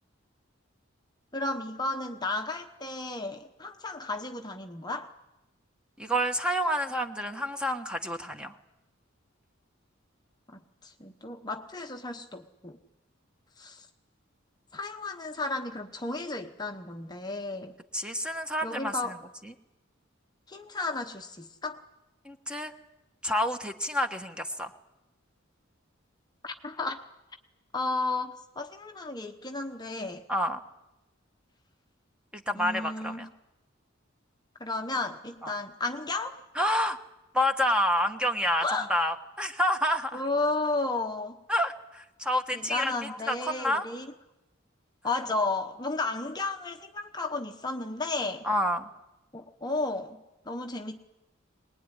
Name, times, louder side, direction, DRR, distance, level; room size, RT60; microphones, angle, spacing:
voice 1, 1.3-5.1 10.5-12.8 13.6-13.9 14.7-17.7 18.6-19.2 20.5-21.8 26.4-27.0 27.7-30.3 32.5-33.2 34.6-36.4 38.6-38.9 40.1-41.4 42.5-44.1 45.0-48.4 49.3-51.0, left 2 dB, 20° left, 5 dB, 0.9 m, -33 dB
voice 2, 6.0-8.6 17.9-19.2 19.4-19.5 22.2-22.7 23.2-24.7 30.3-30.6 32.3-33.3 35.4-35.5 36.5-37.0 37.3-38.6 38.9-40.2 41.5-43.8 48.4-48.9, equal, 5° right, 6 dB, 1.3 m, -28 dB
23.0 x 20.0 x 9.8 m, 0.98 s
head